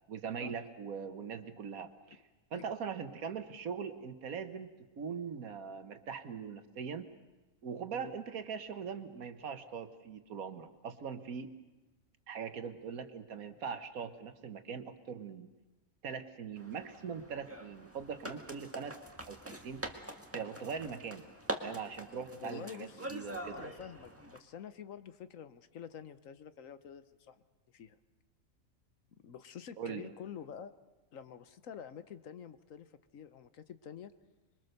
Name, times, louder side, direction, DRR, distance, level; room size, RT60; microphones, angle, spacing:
voice 1, 0.1-2.2 2.5-4.7 5.0-7.1 7.6-11.5 12.3-15.5 16.0-19.0 19.3-19.8 20.3-21.2 21.6-23.6 29.8-30.1, right 6 dB, 85° right, 9 dB, 1.7 m, -41 dB
sound 1, 16.6-24.4, right 1 dB, 10° right, 1.6 m, -44 dB
voice 2, 22.4-23.2 23.5-27.4 27.7-28.0 29.1-30.7 31.1-34.1, left 8 dB, 70° left, 12 dB, 1.3 m, -48 dB
26.0 x 22.5 x 6.7 m, 1.1 s
omnidirectional pair, 1.4 m